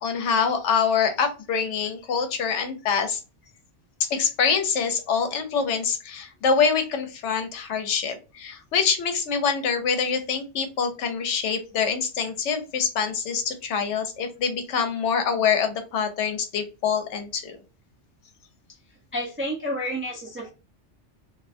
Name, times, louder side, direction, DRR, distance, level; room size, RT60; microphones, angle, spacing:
voice 1, 0.0-3.2 4.1-17.6, left 6 dB, 80° left, 7 dB, 0.9 m, -25 dB
voice 2, 19.1-20.5, equal, 20° right, -1 dB, 0.3 m, -30 dB
2.4 x 2.2 x 2.5 m, 0.30 s
omnidirectional pair, 1.2 m